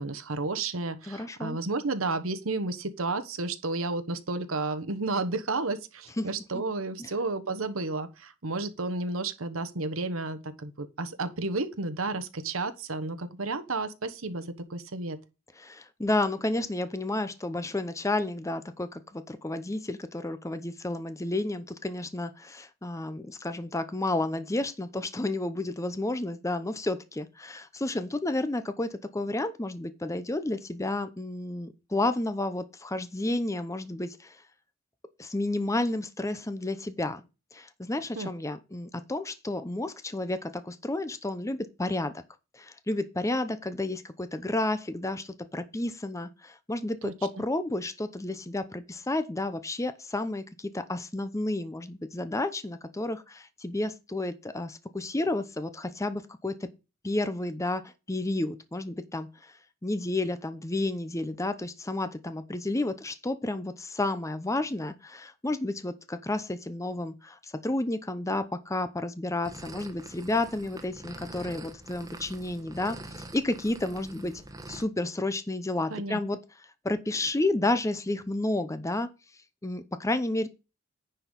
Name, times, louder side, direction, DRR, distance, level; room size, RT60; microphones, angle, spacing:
voice 1, 0.0-15.2 38.1-38.3 47.0-47.1 75.9-76.2, right 3 dB, 80° right, 1.2 m, -32 dB
voice 2, 1.1-1.6 6.2-6.3 7.0-7.1 15.6-34.4 35.2-37.2 37.5-42.2 42.5-56.5 57.0-59.6 59.8-74.3 74.7-76.4 76.8-79.1 79.6-80.5, left 2 dB, 15° left, 0.7 m, -31 dB
sound 1, 69.4-74.8, right 1 dB, 15° right, 1.2 m, -44 dB
10.0 x 4.6 x 5.2 m
head